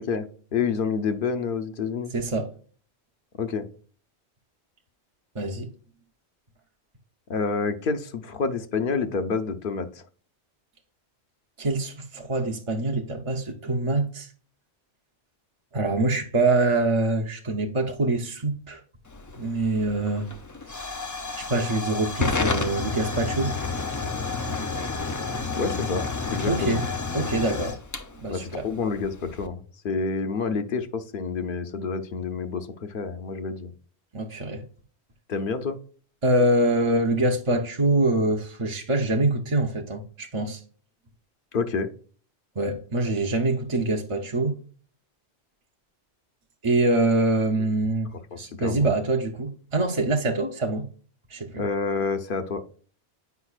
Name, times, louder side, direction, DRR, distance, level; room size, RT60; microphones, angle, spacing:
voice 1, 0.0-2.1 3.4-3.7 7.3-10.0 25.6-26.8 28.3-33.7 35.3-35.8 41.5-41.9 48.3-48.9 51.6-52.6, left 5 dB, 55° left, 0.8 m, -28 dB
voice 2, 2.1-2.5 5.3-5.7 11.6-14.3 15.7-18.8 19.4-20.3 21.4-23.6 26.5-26.8 27.1-27.8 28.2-28.7 34.1-34.6 36.2-40.6 42.6-44.6 46.6-48.1 48.4-50.9 51.3-51.6, right 2 dB, 35° right, 0.6 m, -24 dB
Hiss / Fire / Tick, 19.1-29.5, left 4 dB, 30° left, 0.3 m, -31 dB
8.1 x 5.2 x 2.3 m
omnidirectional pair, 1.1 m